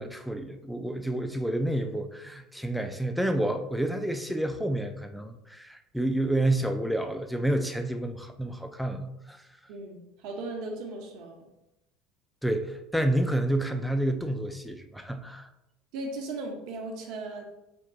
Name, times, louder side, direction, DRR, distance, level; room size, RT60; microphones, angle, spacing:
voice 1, 0.0-9.4 12.4-15.5, right 1 dB, ahead, 6 dB, 0.5 m, -29 dB
voice 2, 9.7-11.4 15.9-17.4, right 2 dB, 65° right, 2 dB, 0.9 m, -37 dB
4.5 x 2.2 x 3.9 m, 0.91 s
hypercardioid pair, 75°, 0 cm